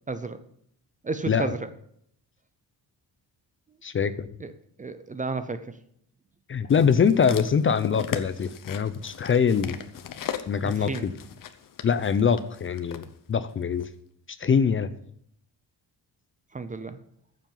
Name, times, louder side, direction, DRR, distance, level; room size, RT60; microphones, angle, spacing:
voice 1, 0.1-0.4 1.0-1.7 4.4-4.5 4.8-5.7 10.6-11.1 16.5-17.0, right 3 dB, 20° right, 11 dB, 0.5 m, -32 dB
voice 2, 3.8-4.3 6.5-9.8 10.5-11.1 11.8-13.0 13.3-13.9 14.4-14.9, left 6 dB, 30° left, 13 dB, 0.5 m, -23 dB
sound 1, 6.7-13.1 13.8-13.9, left 9 dB, 55° left, 1.0 m, -38 dB
14.5 x 7.5 x 5.4 m, 0.69 s
wide cardioid pair, 175°, 39 cm